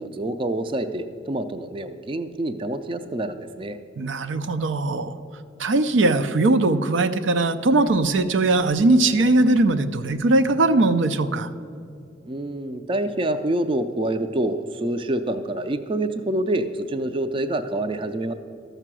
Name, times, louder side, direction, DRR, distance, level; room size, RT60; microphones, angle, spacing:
voice 1, 0.0-3.8 12.3-18.3, right 1 dB, 25° right, 10 dB, 0.4 m, -27 dB
voice 2, 4.0-5.2 5.6-11.5, right 2 dB, 80° right, 10 dB, 0.5 m, -20 dB
13.5 x 6.7 x 6.1 m, 2.5 s
head